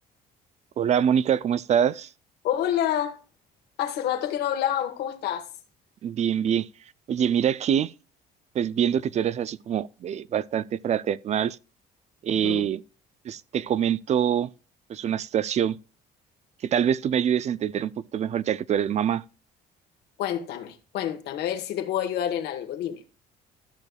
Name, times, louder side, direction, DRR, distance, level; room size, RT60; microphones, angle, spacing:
voice 1, 0.8-2.1 6.0-6.7 7.1-7.9 8.5-11.6 12.2-12.8 13.2-14.5 14.9-15.8 16.7-19.2, right 9 dB, 40° right, 0.4 m, -25 dB
voice 2, 2.4-3.2 3.8-5.5 12.4-12.6 20.2-23.0, left 10 dB, 75° left, 1.3 m, -28 dB
13.5 x 6.5 x 2.3 m
cardioid pair, 110°, 17 cm